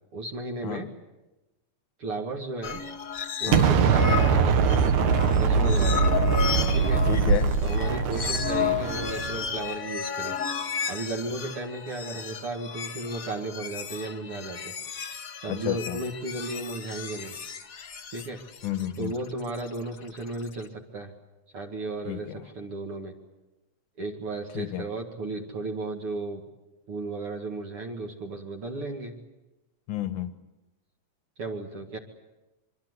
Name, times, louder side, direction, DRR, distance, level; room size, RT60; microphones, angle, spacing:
voice 1, 0.1-0.9 2.0-2.8 3.4-4.6 5.3-6.1 6.7-7.0 7.6-10.4 10.9-14.7 15.4-17.3 18.1-18.4 19.0-21.1 21.5-22.3 22.6-23.2 24.0-26.4 26.9-29.1 31.4-32.0, right 2 dB, 50° right, 2.9 m, -34 dB
sound 1, 2.6-3.6 3.9-20.6, left 7 dB, 60° left, 0.8 m, -33 dB
Explosion, 3.5-9.5, right 5 dB, 75° right, 2.8 m, -22 dB
voice 2, 7.1-7.5 15.5-16.0 18.6-19.1 22.1-22.4 24.5-24.9 29.9-30.3, left 11 dB, 85° left, 2.8 m, -31 dB
25.0 x 24.5 x 8.2 m
omnidirectional pair, 3.4 m